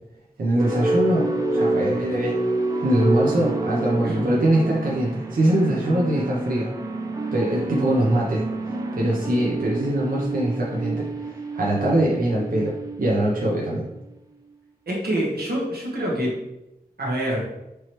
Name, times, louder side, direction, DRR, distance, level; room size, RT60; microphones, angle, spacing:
voice 1, 0.4-2.4 2.8-6.7 7.3-8.4 8.9-11.1 11.5-13.8, right 1 dB, 65° right, -5 dB, 0.8 m, -22 dB
sound 1, 0.6-13.9, right 2 dB, 20° right, 0.5 m, -28 dB
voice 2, 14.9-16.3 17.0-17.4, right 1 dB, 90° right, -3 dB, 1.2 m, -26 dB
4.6 x 3.1 x 3.0 m, 0.93 s
wide cardioid pair, 95°, 16 cm